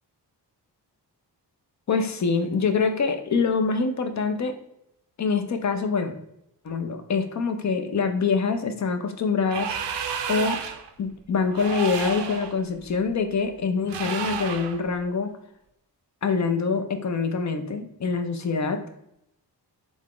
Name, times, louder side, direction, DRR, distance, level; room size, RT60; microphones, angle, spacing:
voice 1, 1.9-4.6 5.2-6.1 6.6-9.8 10.3-10.6 11.0-15.3 16.2-18.8, left 5 dB, 45° left, 7 dB, 0.5 m, -25 dB
sound 1, 9.4-10.9 11.5-12.5 13.9-14.8, right 7 dB, 85° right, 0.6 m, -31 dB
3.8 x 3.5 x 3.6 m, 0.79 s
wide cardioid pair, 125°, 42 cm